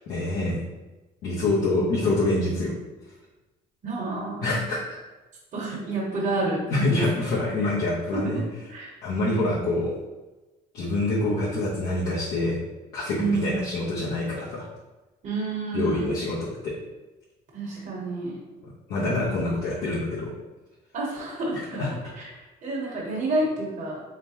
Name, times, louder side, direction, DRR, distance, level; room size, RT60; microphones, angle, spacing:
voice 1, 0.1-0.6 1.2-2.7 4.4-5.0 6.7-8.4 9.0-9.9 10.7-12.6 12.9-14.7 15.7-16.7 18.9-20.3 21.8-22.1, left 2 dB, 75° left, -9 dB, 1.1 m, -26 dB
voice 2, 3.8-4.7 5.5-7.1 8.1-8.4 8.7-8.9 9.2-9.8 13.1-13.6 15.2-16.2 17.5-18.4 19.2-19.3 19.9-20.1 20.9-24.0, right 2 dB, 45° right, -4 dB, 1.2 m, -29 dB
3.8 x 3.4 x 2.8 m, 1.1 s
cardioid pair, 110°, 17 cm